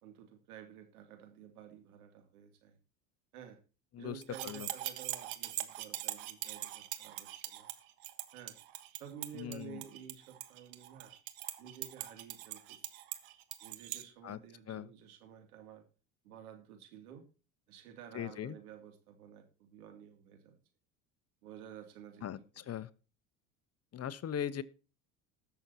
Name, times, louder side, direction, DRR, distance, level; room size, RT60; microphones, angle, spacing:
voice 1, 0.0-2.8 3.3-3.6 4.0-7.7 8.3-8.6 8.9-11.1 11.6-12.8 13.6-15.8 16.2-17.3 17.7-20.6 21.4-22.3, right 9 dB, 85° right, 6 dB, 2.6 m, -52 dB
voice 2, 3.9-4.7 9.3-9.8 14.2-14.4 14.7-14.9 18.1-18.6 22.2-22.9 23.9-24.6, left 10 dB, 35° left, 16 dB, 0.9 m, -39 dB
sound 1, 4.2-14.0, right 15 dB, 70° right, 1.5 m, -42 dB
20.0 x 7.0 x 2.8 m, 0.34 s
hypercardioid pair, 80°, 43 cm